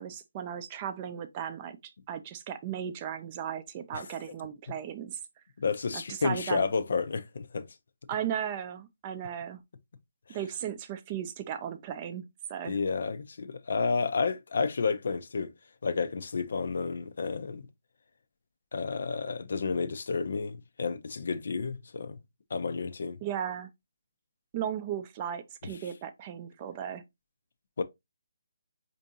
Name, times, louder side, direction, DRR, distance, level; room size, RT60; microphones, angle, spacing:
voice 1, 0.0-5.2 5.9-6.6 8.1-9.6 10.3-12.2 12.5-12.8 23.2-23.7 24.5-27.0, right 9 dB, 25° right, 0.4 m, -36 dB
voice 2, 5.6-7.7 12.6-15.5 15.8-17.7 18.7-22.2 22.5-23.2 25.7-25.8 27.8-27.9, left 4 dB, 60° left, 0.4 m, -31 dB
4.3 x 2.6 x 2.6 m
figure-of-eight pair, 155°, 0 cm